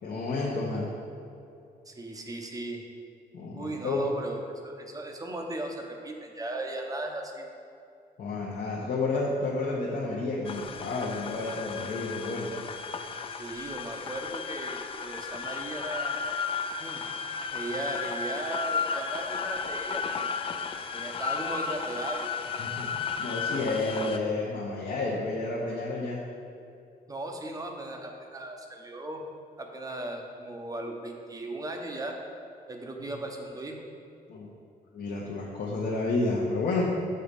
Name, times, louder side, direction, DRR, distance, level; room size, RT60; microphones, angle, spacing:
voice 1, 0.0-0.9 3.3-4.0 8.2-12.6 22.5-26.2 34.3-34.5 34.9-36.9, left 3 dB, 60° left, -4 dB, 0.9 m, -30 dB
voice 2, 1.9-2.8 3.5-7.5 13.4-16.1 16.8-17.0 17.5-20.3 20.9-22.3 27.1-29.3 29.6-32.2 32.7-33.8, right 1 dB, 20° right, 2 dB, 0.7 m, -37 dB
sound 1, 10.4-24.2, left 5 dB, 35° left, 0.3 m, -34 dB
6.5 x 4.2 x 5.2 m, 2.5 s
cardioid pair, 125°, 17 cm